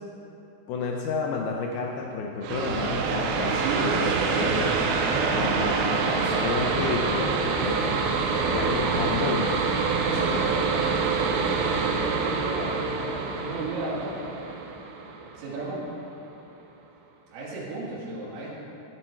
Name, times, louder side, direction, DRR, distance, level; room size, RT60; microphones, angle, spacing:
voice 1, 0.7-4.0 4.3-4.7 5.3-8.0 8.5-9.6, left 4 dB, 85° left, 0 dB, 2.2 m, -30 dB
sound 1, 2.4-15.8, right 5 dB, 85° right, 2.8 m, -26 dB
voice 2, 3.5-5.5 8.3-8.6 10.0-14.2 15.3-15.8 17.3-18.5, right 2 dB, 60° right, -7 dB, 3.0 m, -33 dB
sound 2, 8.2-13.1, left 2 dB, 35° left, 2.7 m, -39 dB
10.5 x 9.0 x 4.4 m, 2.9 s
omnidirectional pair, 5.2 m